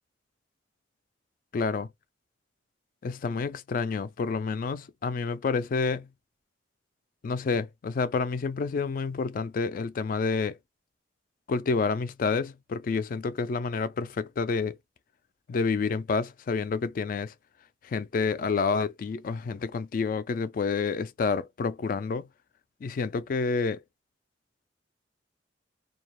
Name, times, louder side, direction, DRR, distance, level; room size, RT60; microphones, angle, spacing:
voice 1, 1.5-1.9 3.0-6.1 7.2-10.6 11.5-14.8 15.5-17.3 17.8-22.3 22.8-23.8, left 4 dB, 45° left, 0.3 m, -29 dB
2.3 x 2.1 x 2.9 m
head